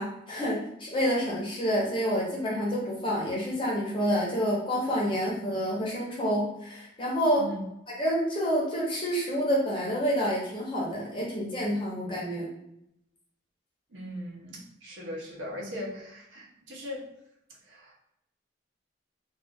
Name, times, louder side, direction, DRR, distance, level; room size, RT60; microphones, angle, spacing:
voice 1, 0.0-7.4 7.9-12.5, equal, 25° left, -5 dB, 0.9 m, -28 dB
voice 2, 13.9-17.1 17.7-17.9, left 1 dB, 90° right, -2 dB, 0.8 m, -39 dB
2.5 x 2.4 x 3.5 m, 0.80 s
head